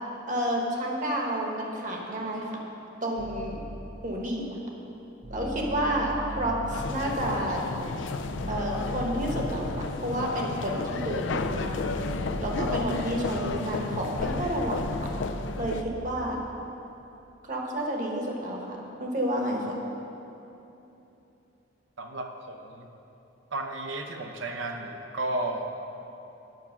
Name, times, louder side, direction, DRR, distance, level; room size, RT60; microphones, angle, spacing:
voice 1, 0.3-2.5 3.0-3.6 4.0-4.6 5.3-7.6 8.5-11.9 12.4-15.1 15.6-16.4 17.4-19.8, right 1 dB, 40° right, -1 dB, 1.3 m, -30 dB
sound 1, 3.2-4.2 5.2-10.4 11.2-13.3 14.2-16.3, equal, 15° right, 0.4 m, -38 dB
sound 2, 6.7-15.8, left 4 dB, 65° left, 0.4 m, -33 dB
voice 2, 22.0-22.9 23.5-25.7, right 2 dB, 75° right, 4 dB, 0.8 m, -33 dB
9.2 x 6.0 x 5.9 m, 3.0 s
head